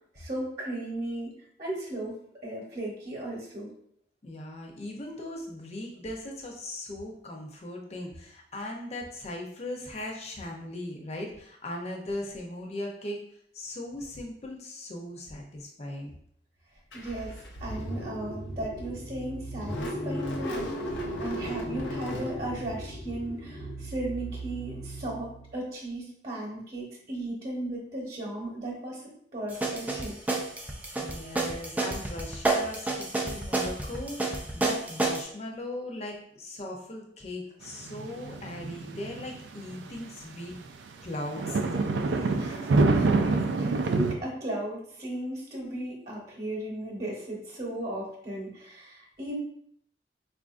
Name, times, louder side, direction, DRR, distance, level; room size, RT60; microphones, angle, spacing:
voice 1, 0.1-1.3 1.6-2.1 2.4-3.7 16.9-20.9 21.2-29.0 29.3-30.2 42.4-49.3, right 1 dB, 40° right, -3 dB, 1.0 m, -36 dB
voice 2, 4.2-13.2 13.5-16.1 31.0-40.6 41.0-42.3, left 1 dB, 35° left, 0 dB, 0.6 m, -39 dB
Car / Engine starting, 16.9-25.7, equal, 85° left, 0.6 m, -36 dB
sound 1, 29.5-35.2, right 2 dB, 10° right, 0.3 m, -29 dB
sound 2, 37.7-40.0 40.6-40.7 41.3-44.2, right 3 dB, 85° right, 0.4 m, -26 dB
4.4 x 2.5 x 2.4 m, 0.67 s
head